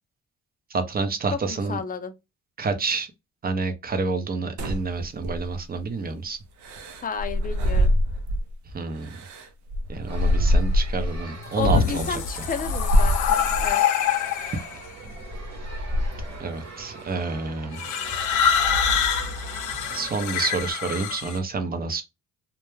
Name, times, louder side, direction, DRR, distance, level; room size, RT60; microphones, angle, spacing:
voice 1, 0.7-1.8 2.6-3.1 3.4-6.4 8.7-9.2 9.9-12.2 16.4-17.8 19.9-22.0, right 4 dB, 30° right, 0.6 m, -28 dB
voice 2, 1.3-2.1 7.0-7.9 11.6-13.8, left 6 dB, 30° left, 0.5 m, -32 dB
sound 1, 4.6-5.8 6.6-8.5 9.0-11.2 11.9-12.0 12.6-13.7 14.3-14.6 15.0-16.4, left 1 dB, 75° right, 0.6 m, -24 dB
sound 2, 10.1-20.7, right 3 dB, 60° right, 1.0 m, -42 dB
sound 3, 11.4-14.8 15.7-16.2 17.7-21.4, left 7 dB, 80° left, 0.6 m, -25 dB
2.2 x 2.1 x 3.1 m
cardioid pair, 90°, 30 cm